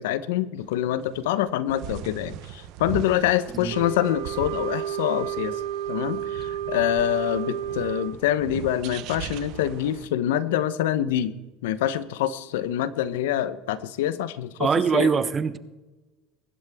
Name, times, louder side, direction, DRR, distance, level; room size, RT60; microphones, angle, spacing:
voice 1, 0.0-5.6 5.9-11.3 11.6-15.1, left 11 dB, 85° left, 15 dB, 0.9 m, -26 dB
sound 1, 0.6-10.1, right 12 dB, 65° right, 0.9 m, -40 dB
Wind instrument woodwind instrument, 3.7-8.2, right 10 dB, 90° right, 1.3 m, -31 dB
voice 2, 14.6-15.6, right 5 dB, 30° right, 14 dB, 1.0 m, -22 dB
22.5 x 11.5 x 3.6 m, 1.1 s
supercardioid pair, 90°, 0 cm